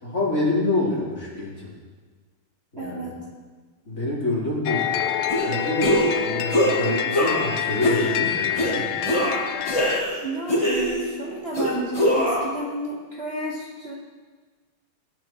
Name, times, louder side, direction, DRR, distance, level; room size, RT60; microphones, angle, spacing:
voice 1, 0.0-1.7 2.7-3.1 3.9-4.9 5.4-8.9, left 2 dB, 35° left, -7 dB, 4.3 m, -27 dB
voice 2, 2.8-3.2 10.2-13.9, right 1 dB, 35° right, -4 dB, 1.4 m, -32 dB
sound 1, 4.7-10.0, left 9 dB, 80° left, 1.4 m, -27 dB
sound 2, 5.3-5.5 5.8-6.2 6.5-6.8 7.1-7.5 7.8-8.1 8.6-8.7 9.0-10.2 10.5-11.1 11.5-12.5, equal, 15° left, 3.6 m, -22 dB
20.0 x 12.0 x 3.1 m, 1.4 s
omnidirectional pair, 2.3 m